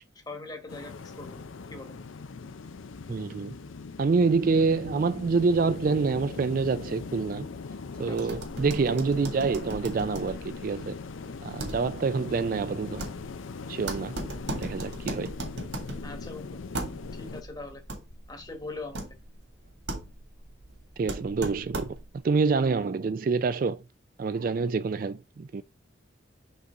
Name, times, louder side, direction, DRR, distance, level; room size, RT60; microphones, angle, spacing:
voice 1, 0.3-2.0 8.1-8.2 16.0-16.6 17.2-17.8 18.3-19.0, left 3 dB, 20° left, 1.2 m, -41 dB
sound 1, 0.7-17.4, left 4 dB, 85° left, 0.6 m, -40 dB
voice 2, 3.1-3.6 4.0-7.5 8.0-11.0 11.4-13.1 13.7-14.2 14.5-15.4 21.0-22.0 22.2-23.8 24.2-25.6, right 4 dB, 45° right, 0.3 m, -27 dB
sound 2, 8.2-22.2, right 1 dB, 65° right, 1.9 m, -39 dB
5.6 x 3.9 x 5.5 m
head